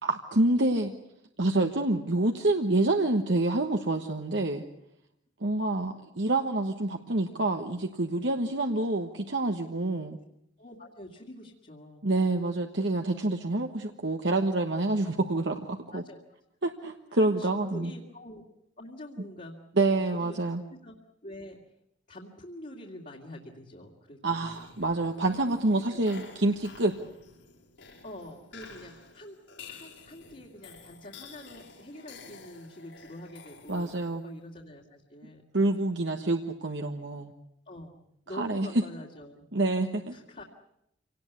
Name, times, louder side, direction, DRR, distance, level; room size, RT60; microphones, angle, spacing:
voice 1, 0.0-0.9 1.4-4.6 5.4-10.2 12.0-16.0 16.6-17.9 19.8-20.6 24.2-26.9 33.7-34.2 35.5-37.3 38.3-38.7 39.5-40.1, right 2 dB, 65° right, 4 dB, 1.3 m, -27 dB
voice 2, 10.6-12.4 15.9-16.2 17.1-18.4 18.8-20.9 21.2-21.6 22.1-24.7 25.9-26.0 28.0-29.4 29.7-33.9 34.2-35.8 37.7-38.0 38.3-39.8 40.1-40.4, left 1 dB, 45° left, -2 dB, 2.4 m, -46 dB
sound 1, 24.4-34.3, left 4 dB, 80° left, 5.9 m, -51 dB
26.5 x 18.5 x 8.2 m, 0.79 s
head